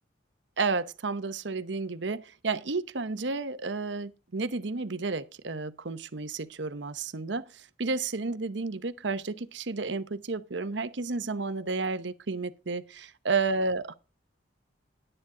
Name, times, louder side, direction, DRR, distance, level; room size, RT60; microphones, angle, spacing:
voice 1, 0.6-13.9, right 4 dB, 75° right, 0.9 m, -32 dB
12.0 x 10.0 x 3.8 m
head